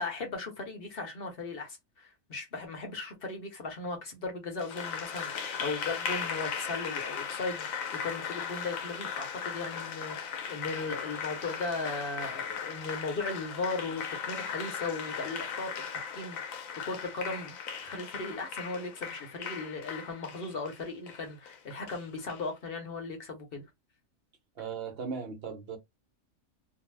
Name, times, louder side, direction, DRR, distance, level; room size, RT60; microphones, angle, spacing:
voice 1, 0.0-23.6, left 3 dB, 50° left, 0.9 m, -37 dB
Applause, 4.6-22.4, left 7 dB, 90° left, 1.1 m, -38 dB
voice 2, 24.6-25.8, right 5 dB, 55° right, 0.9 m, -37 dB
2.6 x 2.1 x 3.2 m
omnidirectional pair, 1.4 m